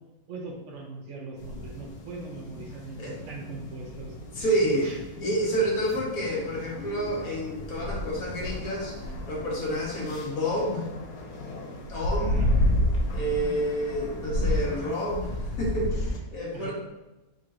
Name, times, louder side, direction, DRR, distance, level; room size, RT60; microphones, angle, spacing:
voice 1, 0.3-4.1 4.8-5.0 12.1-12.5 16.5-16.7, right 3 dB, 65° right, 0 dB, 0.9 m, -40 dB
sound 1, 1.4-16.2, left 1 dB, 90° left, 1.2 m, -31 dB
voice 2, 4.3-4.9 5.2-8.9 9.3-10.9 11.7-12.4 13.1-16.7, right 1 dB, 75° left, -4 dB, 1.6 m, -29 dB
4.4 x 3.7 x 2.5 m, 1.0 s
omnidirectional pair, 1.5 m